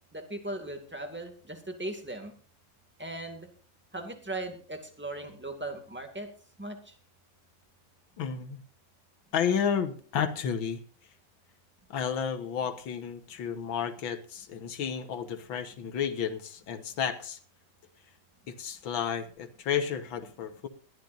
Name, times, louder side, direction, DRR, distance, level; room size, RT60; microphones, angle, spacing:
voice 1, 0.1-2.3 3.0-3.5 3.9-6.3 6.6-6.9, right 1 dB, 5° right, 5 dB, 2.1 m, -38 dB
voice 2, 8.2-8.6 9.3-10.8 11.9-17.4 18.5-20.7, left 7 dB, 90° left, 9 dB, 2.0 m, -32 dB
21.0 x 13.5 x 2.6 m, 0.41 s
omnidirectional pair, 2.1 m